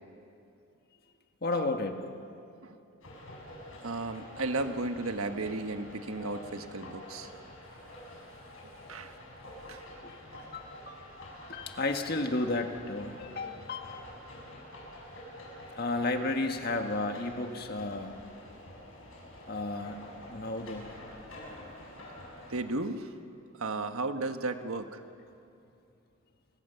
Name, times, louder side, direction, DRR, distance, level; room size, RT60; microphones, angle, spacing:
voice 1, 1.4-2.0 10.0-13.9 15.7-18.1 19.5-21.0, left 2 dB, 45° left, 5 dB, 1.7 m, -33 dB
sound 1, 3.0-22.6, left 1 dB, 70° left, 7.8 m, -48 dB
voice 2, 3.8-7.3 8.6-9.1 9.7-9.8 22.5-23.1 23.5-25.0, right 2 dB, 80° right, 7 dB, 1.4 m, -34 dB
29.5 x 23.5 x 7.0 m, 2.6 s
head